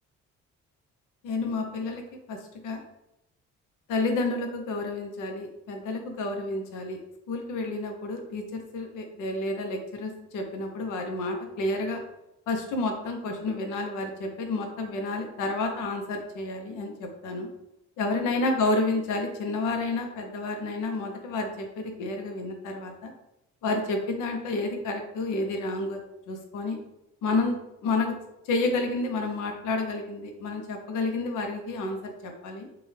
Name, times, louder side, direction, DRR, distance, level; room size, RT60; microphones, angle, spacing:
voice 1, 1.2-2.0 2.3-2.4 2.6-2.8 3.9-7.0 7.3-12.0 12.5-17.5 18.0-23.1 23.6-26.0 26.3-26.8 27.2-28.2 28.5-32.7, left 2 dB, 85° left, 3 dB, 0.8 m, -30 dB
6.9 x 2.3 x 3.2 m, 0.87 s
cardioid pair, 90°, 30 cm